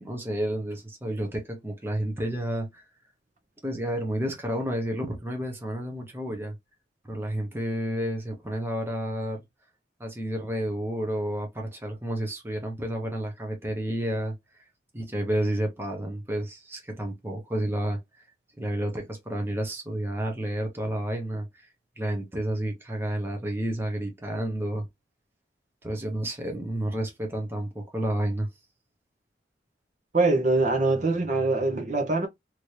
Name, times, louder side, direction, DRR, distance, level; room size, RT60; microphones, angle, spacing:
voice 1, 0.0-2.8 3.6-6.5 7.1-9.4 10.0-14.3 14.9-18.0 18.6-21.7 22.0-24.9 25.8-28.5, right 1 dB, 10° right, 0.8 m, -30 dB
voice 2, 30.1-32.3, right 3 dB, 40° right, 0.8 m, -23 dB
3.0 x 2.6 x 3.1 m
head